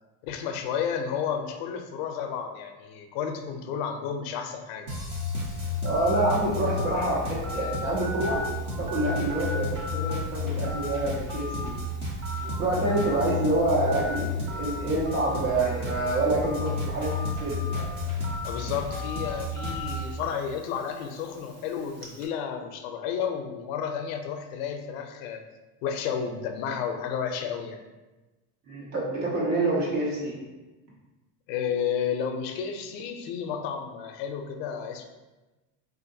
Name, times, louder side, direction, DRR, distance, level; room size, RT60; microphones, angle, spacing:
voice 1, 0.2-4.9 18.4-25.4 25.8-27.8 31.5-35.0, left 7 dB, 55° left, 5 dB, 0.4 m, -32 dB
sound 1, 4.9-20.1, left 3 dB, 15° right, 0.3 m, -32 dB
Telephone, 5.2-22.3, left 2 dB, 45° right, 0.7 m, -40 dB
voice 2, 5.8-8.4 8.8-11.7 12.4-17.9 28.7-30.4, right 2 dB, 85° right, -4 dB, 1.2 m, -27 dB
3.8 x 2.5 x 2.6 m, 1.1 s
cardioid pair, 165°, 36 cm